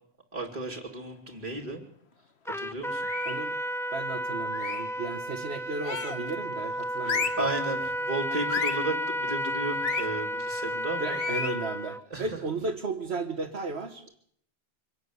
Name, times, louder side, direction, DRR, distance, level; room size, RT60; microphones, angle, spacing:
voice 1, 0.3-1.9 2.5-3.1 7.4-11.2 12.1-12.3, right 2 dB, 40° right, -4 dB, 2.7 m, -34 dB
Trumpet, 2.5-12.0, equal, 5° left, 0.6 m, -32 dB
sound 1, 3.0-3.5 4.5-5.0 5.8-6.3 7.0-7.5 8.5-8.9 9.8-10.1 11.1-11.6, left 5 dB, 80° left, 1.5 m, -32 dB
voice 2, 3.3-3.6 3.9-7.5 11.0-14.2, right 3 dB, 80° right, 3 dB, 1.7 m, -34 dB
24.5 x 12.5 x 9.5 m, 0.67 s
omnidirectional pair, 1.1 m